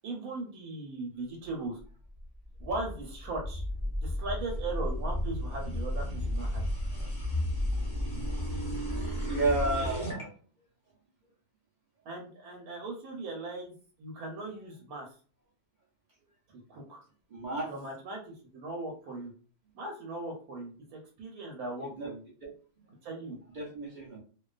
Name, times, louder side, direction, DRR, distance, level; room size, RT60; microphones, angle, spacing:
voice 1, 0.0-1.8 2.6-3.6 4.0-6.6 12.0-13.7 14.0-15.1 16.5-17.0 17.7-19.3 19.7-22.2 23.0-23.4, right 2 dB, 80° right, 0 dB, 1.1 m, -38 dB
sound 1, 2.2-10.2, left 1 dB, 20° left, 0.7 m, -33 dB
voice 2, 9.3-10.3 17.3-17.7 21.8-22.1 22.4-22.5 23.5-24.2, right 2 dB, 60° right, -3 dB, 0.5 m, -32 dB
2.5 x 2.2 x 2.3 m, 0.40 s
omnidirectional pair, 1.6 m